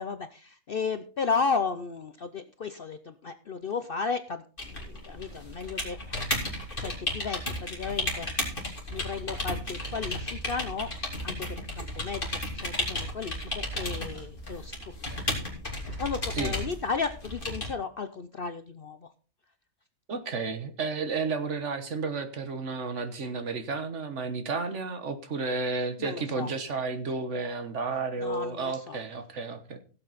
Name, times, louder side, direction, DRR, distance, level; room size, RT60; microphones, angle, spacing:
voice 1, 0.0-6.3 6.7-10.9 11.2-15.2 15.7-19.1 26.0-26.5 28.2-29.0, left 5 dB, 55° left, 10 dB, 0.7 m, -34 dB
sound 1, 4.6-17.7, left 1 dB, 35° left, 3.1 m, -34 dB
voice 2, 20.1-29.8, right 4 dB, 55° right, 9 dB, 1.5 m, -32 dB
16.5 x 7.7 x 4.0 m, 0.38 s
omnidirectional pair, 1.5 m